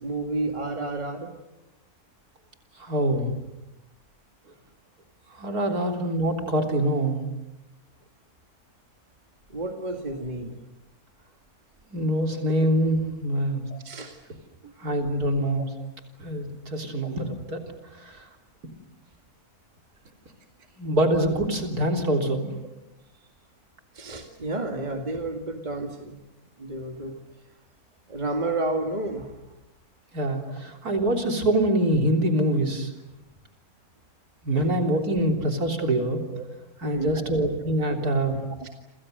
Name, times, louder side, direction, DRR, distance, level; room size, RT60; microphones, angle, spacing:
voice 1, 0.0-1.3 9.5-10.6 13.7-14.2 23.9-26.2 26.6-27.2 28.1-29.4 34.6-34.7 36.3-36.4 36.8-37.3 38.0-38.1 38.6-38.7, right 2 dB, 30° right, 3 dB, 2.2 m, -31 dB
voice 2, 2.8-3.3 5.3-7.2 11.9-13.6 14.8-15.7 16.2-17.6 18.0-18.3 20.8-22.5 30.1-32.9 34.4-36.2 36.8-38.4, right 1 dB, 80° right, 3 dB, 4.1 m, -25 dB
30.0 x 27.0 x 6.7 m, 0.93 s
omnidirectional pair, 1.6 m